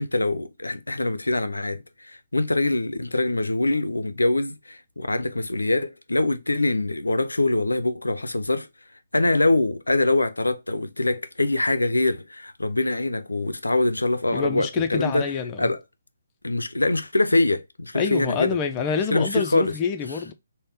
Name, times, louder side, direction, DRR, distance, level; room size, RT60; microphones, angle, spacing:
voice 1, 0.0-8.7 9.1-15.3 15.6-15.8 16.4-18.6 19.1-19.8, left 2 dB, 85° left, 0.5 m, -24 dB
voice 2, 14.3-15.7 17.9-20.3, left 6 dB, 25° left, 0.5 m, -27 dB
4.0 x 2.2 x 3.3 m
figure-of-eight pair, 140°, 0 cm